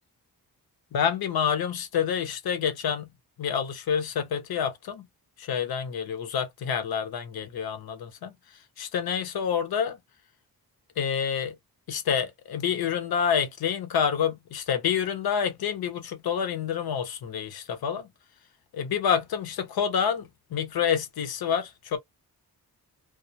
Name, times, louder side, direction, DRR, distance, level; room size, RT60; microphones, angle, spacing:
voice 1, 0.9-5.1 5.4-8.4 8.8-10.0 11.0-11.6 11.9-18.1 18.7-22.0, left 7 dB, 80° left, 0.8 m, -28 dB
2.4 x 2.1 x 2.8 m
cardioid pair, 100°, 36 cm